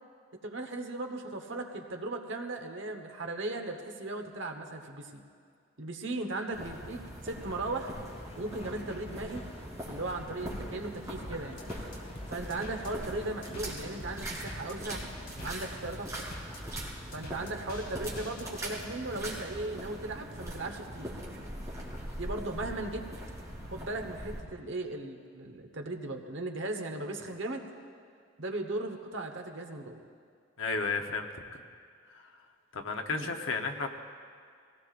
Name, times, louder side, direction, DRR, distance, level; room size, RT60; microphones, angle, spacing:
voice 1, 0.4-5.2 5.8-7.9 8.4-9.4 9.9-11.7 12.3-15.0 15.4-16.3 17.1-21.1 22.1-23.1 23.6-27.7 28.4-30.0 33.1-33.3, right 2 dB, 70° right, 4 dB, 1.2 m, -37 dB
sound 1, 6.5-24.4, equal, 15° right, 3.0 m, -41 dB
sound 2, 8.1-15.6, left 2 dB, 30° left, 0.7 m, -53 dB
sound 3, 11.2-18.4, left 1 dB, 50° left, 2.3 m, -45 dB
voice 2, 30.6-31.6 32.1-32.3 32.7-33.9, left 4 dB, 85° left, 4 dB, 1.0 m, -33 dB
22.0 x 17.0 x 2.5 m, 2.2 s
head